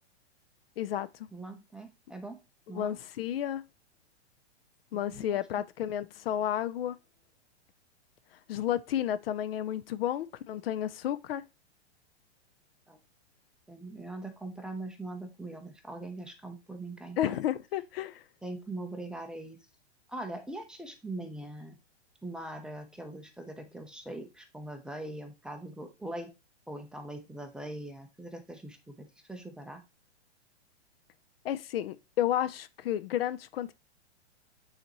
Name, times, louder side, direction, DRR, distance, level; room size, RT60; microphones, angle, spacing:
voice 1, 0.8-1.1 2.8-3.6 4.9-7.0 8.5-11.4 17.2-18.2 31.4-33.7, left 11 dB, 60° left, 0.6 m, -31 dB
voice 2, 1.3-2.4 2.7-3.0 5.1-5.3 12.9-13.0 13.7-17.4 18.4-19.6 20.1-21.8 22.2-26.3 26.7-29.8, right 2 dB, ahead, 0.7 m, -41 dB
8.6 x 4.1 x 3.0 m
hypercardioid pair, 125°, 34 cm